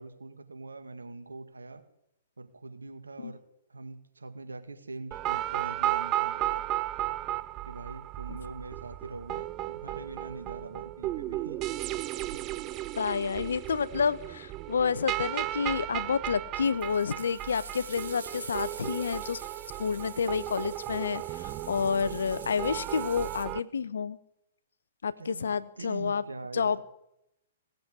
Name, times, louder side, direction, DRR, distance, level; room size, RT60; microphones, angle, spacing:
voice 1, 0.0-1.8 2.4-3.4 3.7-6.7 7.6-12.0 12.3-12.4 25.2-26.8, right 3 dB, 85° right, 8 dB, 2.0 m, -43 dB
sound 1, 5.1-23.6, right 15 dB, 30° right, 0.5 m, -35 dB
voice 2, 12.9-19.4 19.8-24.2 25.0-26.2 26.5-26.8, left 6 dB, 75° left, 16 dB, 0.9 m, -29 dB
sound 2, 16.8-23.5, right 5 dB, 65° right, 3.5 m, -47 dB
18.0 x 7.8 x 9.6 m, 0.82 s
hypercardioid pair, 125°, 0 cm